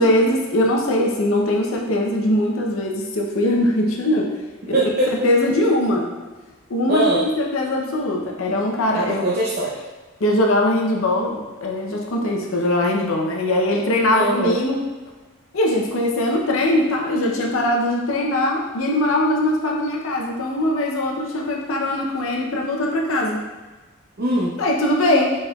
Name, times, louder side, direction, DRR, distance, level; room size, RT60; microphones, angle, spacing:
voice 1, 0.0-4.3 4.7-4.8 5.2-6.1 6.7-9.3 10.2-14.8 15.5-23.5 24.6-25.3, left 1 dB, 70° left, 0 dB, 0.7 m, -21 dB
voice 2, 4.7-5.3 6.9-7.2 8.9-9.8 14.1-14.6 24.2-24.6, right 1 dB, 45° right, -4 dB, 0.6 m, -22 dB
5.3 x 4.2 x 2.3 m, 1.2 s
head